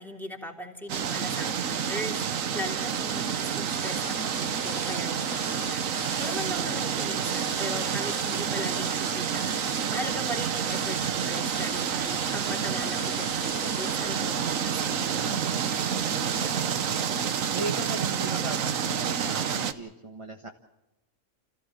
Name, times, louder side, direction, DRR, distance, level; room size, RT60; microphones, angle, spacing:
voice 1, 0.0-9.5 9.9-15.8, left 1 dB, ahead, 1 dB, 3.1 m, -39 dB
sound 1, 0.9-19.7, right 7 dB, 85° right, 1.4 m, -29 dB
sound 2, 2.9-13.9, left 8 dB, 90° left, 1.4 m, -45 dB
voice 2, 16.1-17.1 17.5-20.5, right 2 dB, 25° right, 2 dB, 1.5 m, -38 dB
29.5 x 15.0 x 7.6 m, 1.0 s
omnidirectional pair, 1.4 m